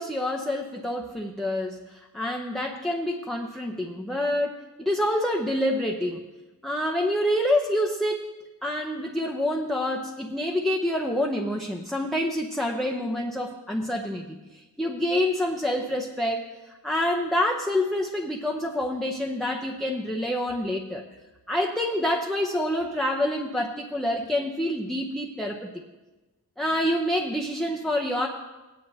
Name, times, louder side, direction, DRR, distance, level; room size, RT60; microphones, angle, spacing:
voice 1, 0.0-6.2 6.6-8.3 8.6-16.6 16.8-21.0 21.5-25.7 26.6-28.3, left 1 dB, ahead, 0 dB, 0.7 m, -27 dB
17.5 x 9.8 x 2.8 m, 1.1 s
wide cardioid pair, 120°, 35 cm